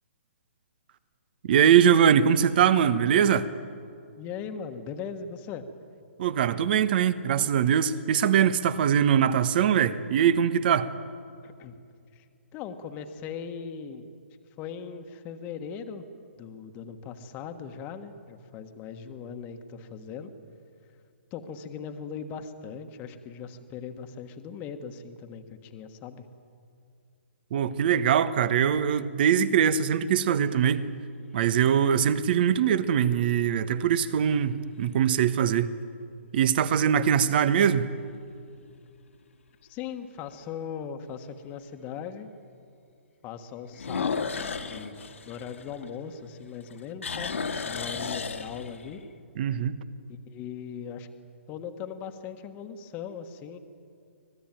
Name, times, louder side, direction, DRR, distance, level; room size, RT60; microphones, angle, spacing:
voice 1, 1.4-3.5 6.2-10.9 27.5-30.9 31.3-35.7 36.3-37.9 49.4-49.8, right 8 dB, 45° right, 14 dB, 1.2 m, -22 dB
voice 2, 4.2-5.7 11.4-11.8 12.1-12.2 12.5-14.1 14.6-16.0 16.4-20.3 21.3-26.2 39.7-42.3 43.2-47.4 47.6-49.0 50.3-51.1 51.5-53.6, left 7 dB, 25° left, 6 dB, 1.5 m, -39 dB
sound 1, 30.1-30.8 31.4-31.5 36.8-37.2 37.7-37.8 38.3-38.4 38.7-38.8 40.3-40.4 43.7-46.3 46.6-49.0, left 5 dB, 80° left, 2.0 m, -34 dB
25.0 x 19.0 x 9.1 m, 2.3 s
hypercardioid pair, 140°, 7 cm